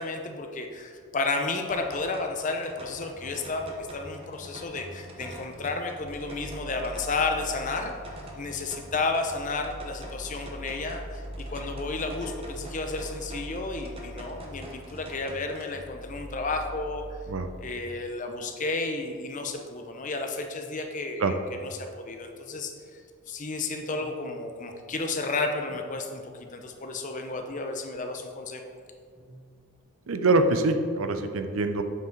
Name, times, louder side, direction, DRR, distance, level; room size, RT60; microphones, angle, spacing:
voice 1, 0.0-7.9 8.4-17.2 17.6-21.4 21.8-23.0 23.3-28.7, left 3 dB, 35° left, 4 dB, 0.6 m, -32 dB
sound 1, 1.7-15.7, equal, 25° right, 0.8 m, -46 dB
sound 2, 2.7-17.7, equal, 45° right, 1.5 m, -43 dB
sound 3, 23.9-24.5 25.7-26.3 27.3-27.9 29.1-29.7 30.7-31.1, right 1 dB, 10° right, 1.2 m, -51 dB
voice 2, 30.1-31.8, right 2 dB, 65° right, 8 dB, 0.5 m, -24 dB
7.6 x 5.6 x 3.9 m, 2.2 s
head